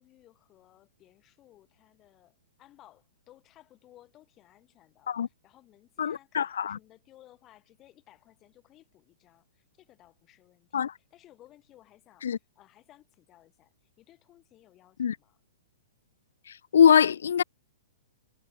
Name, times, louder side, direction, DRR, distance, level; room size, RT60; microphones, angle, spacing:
voice 1, 0.0-15.4, left 14 dB, 20° left, 2.9 m, -59 dB
voice 2, 6.0-6.8 10.7-10.9 12.2-12.4 15.0-15.2 16.5-17.4, left 8 dB, 75° left, 0.4 m, -23 dB
hypercardioid pair, 175°, 0 cm